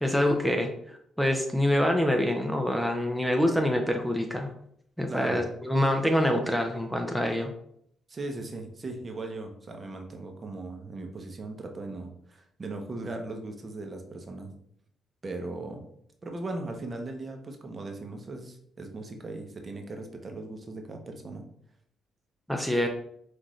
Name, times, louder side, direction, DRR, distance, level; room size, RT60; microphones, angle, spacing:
voice 1, 0.0-4.5 5.0-7.5 22.5-22.9, left 1 dB, ahead, 3 dB, 0.6 m, -26 dB
voice 2, 5.1-5.4 8.1-14.5 15.2-15.8 16.2-21.4, right 2 dB, 35° right, 4 dB, 0.8 m, -38 dB
5.9 x 2.6 x 3.1 m, 0.69 s
cardioid pair, 90°, 0 cm